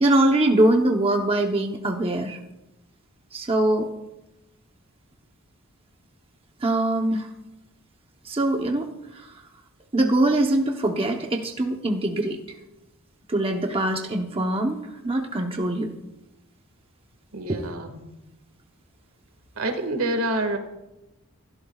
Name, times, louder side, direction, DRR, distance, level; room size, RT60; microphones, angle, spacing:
voice 1, 0.0-2.4 3.3-3.9 6.6-7.3 8.2-9.3 9.9-12.4 13.3-15.9 17.5-17.7, right 1 dB, 25° right, 2 dB, 0.9 m, -23 dB
voice 2, 17.3-18.2 19.6-20.6, right 1 dB, 75° right, 6 dB, 1.9 m, -27 dB
27.5 x 13.0 x 2.4 m, 1.0 s
head